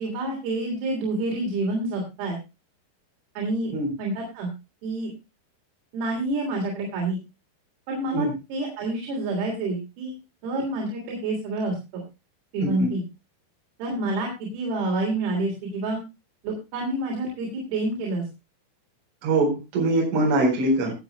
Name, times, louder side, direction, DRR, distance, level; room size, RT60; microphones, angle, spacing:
voice 1, 0.0-2.4 3.4-3.7 4.0-4.5 4.8-5.1 5.9-7.2 7.9-10.1 10.4-12.0 12.5-13.0 13.8-16.0 16.4-18.2, right 2 dB, 90° right, -1 dB, 5.9 m, -28 dB
voice 2, 19.2-20.9, right 2 dB, 65° right, -1 dB, 6.7 m, -23 dB
23.0 x 7.9 x 2.2 m, 0.27 s
omnidirectional pair, 5.9 m